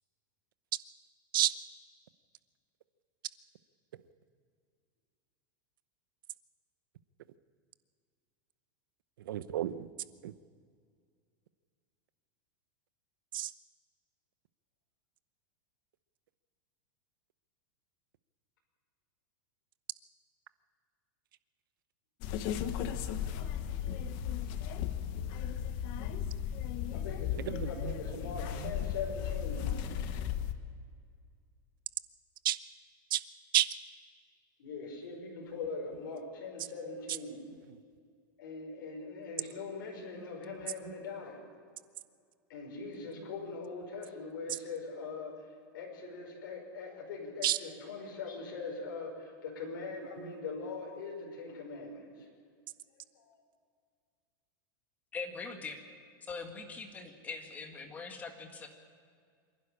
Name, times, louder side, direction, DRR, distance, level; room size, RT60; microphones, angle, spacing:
voice 1, 9.2-9.9 10.2-10.3 13.3-13.5 27.4-28.8 29.5-30.1 32.4-32.6 33.1-33.2 33.5-33.7 36.6-36.7 37.1-37.2 37.6-37.8 40.1-40.5 40.8-40.9 42.9-43.3 44.5-44.6 47.4-47.6 50.2-50.3, right 13 dB, 75° right, 14 dB, 0.9 m, -33 dB
sound 1, 22.2-30.5, left 9 dB, 40° left, 1.1 m, -35 dB
voice 2, 26.9-29.7 34.6-37.4 38.4-41.4 42.5-45.5 45.7-52.3 52.9-53.4, left 4 dB, 75° left, -1 dB, 5.5 m, -42 dB
voice 3, 55.1-55.8 56.3-58.7, left 4 dB, 15° left, 4 dB, 1.8 m, -42 dB
26.5 x 11.5 x 9.9 m, 2.2 s
supercardioid pair, 165°, 11 cm